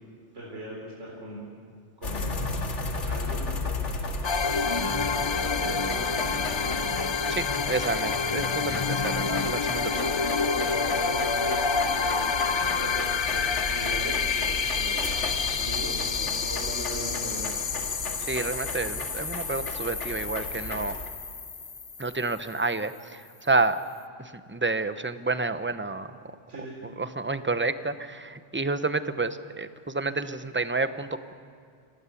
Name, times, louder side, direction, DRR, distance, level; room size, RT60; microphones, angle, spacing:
voice 1, 0.3-1.5 2.0-2.6 3.0-6.8 9.4-10.1 10.5-15.2 15.6-17.7 26.5-26.8, right 1 dB, 85° right, -3 dB, 4.3 m, -39 dB
sound 1, 2.0-21.1, left 3 dB, 85° left, 2.1 m, -35 dB
sound 2, 4.2-22.7, left 5 dB, 35° left, 0.4 m, -28 dB
voice 2, 7.3-9.9 18.3-20.9 22.0-23.8 24.2-26.1 26.8-31.3, right 3 dB, 10° right, 11 dB, 0.7 m, -29 dB
27.0 x 18.5 x 8.4 m, 2.3 s
omnidirectional pair, 1.2 m